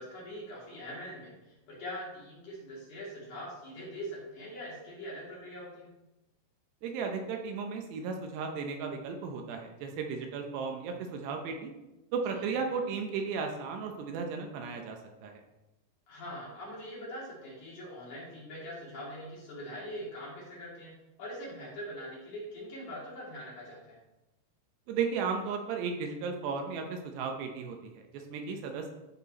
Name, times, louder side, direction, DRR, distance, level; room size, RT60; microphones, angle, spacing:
voice 1, 0.0-5.9 16.1-24.0, equal, 50° left, -6 dB, 3.3 m, -43 dB
voice 2, 6.8-11.7 12.1-15.4 24.9-28.9, right 5 dB, 80° right, 3 dB, 2.8 m, -35 dB
13.0 x 4.5 x 4.1 m, 0.99 s
omnidirectional pair, 5.1 m